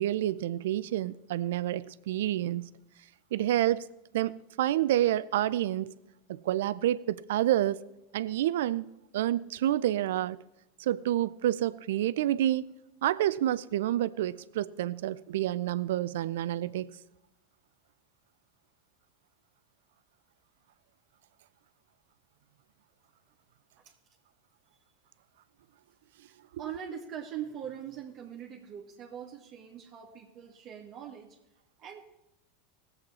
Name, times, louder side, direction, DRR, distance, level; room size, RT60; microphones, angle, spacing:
voice 1, 0.0-2.7 3.3-3.9 4.1-5.9 6.3-7.8 8.1-8.9 9.1-10.4 10.8-12.7 13.0-16.9, right 13 dB, 70° right, 0.5 m, -28 dB
voice 2, 26.6-31.4 31.8-32.0, right 9 dB, 45° right, 1.6 m, -42 dB
19.0 x 8.0 x 4.2 m
hypercardioid pair, 90°, 0 cm